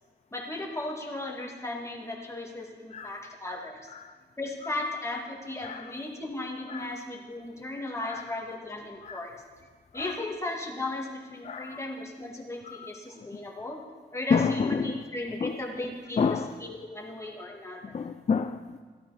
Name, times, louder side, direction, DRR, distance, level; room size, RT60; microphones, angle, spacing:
voice 1, 0.3-3.8 4.4-9.4 9.9-13.8 14.1-16.2 16.6-17.9, left 2 dB, 15° left, -1 dB, 2.0 m, -36 dB
voice 2, 2.9-3.3 3.9-4.1 4.6-4.9 5.6-6.0 6.7-7.1 8.0-8.3 9.0-9.3 9.9-10.2 11.4-11.9 12.6-12.9 14.3-15.0 15.4-15.7 16.2-16.6 17.8-18.8, left 5 dB, 35° left, 9 dB, 0.4 m, -30 dB
13.5 x 12.5 x 4.1 m, 1.5 s
wide cardioid pair, 115°, 19 cm